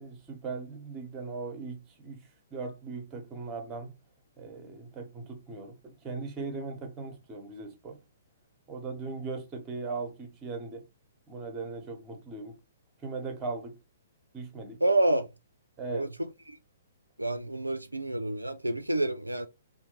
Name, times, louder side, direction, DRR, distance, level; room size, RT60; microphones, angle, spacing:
voice 1, 0.0-2.2 2.5-3.9 4.4-8.0 8.7-10.9 11.3-12.6 13.0-13.8 14.3-14.8 15.8-16.1, right 4 dB, 20° right, 0.9 m, -38 dB
voice 2, 14.8-15.3 15.9-16.6 17.2-19.5, right 2 dB, 90° right, 0.4 m, -28 dB
3.6 x 2.6 x 3.0 m
figure-of-eight pair, 120°, 0 cm